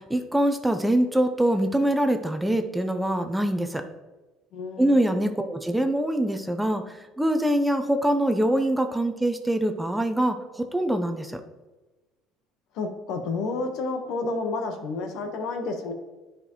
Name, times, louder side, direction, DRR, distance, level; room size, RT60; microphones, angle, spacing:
voice 1, 0.0-3.8 4.8-11.4, right 1 dB, 5° right, 6 dB, 0.7 m, -24 dB
voice 2, 4.5-5.1 12.7-15.9, left 3 dB, 70° left, 4 dB, 1.2 m, -30 dB
9.7 x 5.0 x 3.1 m, 1.1 s
supercardioid pair, 100°, 0 cm